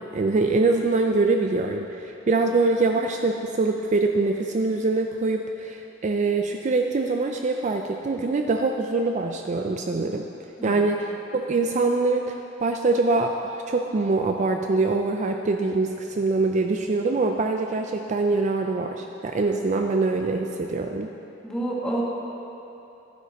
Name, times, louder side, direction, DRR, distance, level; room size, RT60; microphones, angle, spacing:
voice 1, 0.0-10.2 10.6-21.1, right 3 dB, 40° right, 4 dB, 0.4 m, -24 dB
voice 2, 21.4-22.0, right 1 dB, 5° left, -6 dB, 1.7 m, -28 dB
12.0 x 9.4 x 4.1 m, 2.9 s
head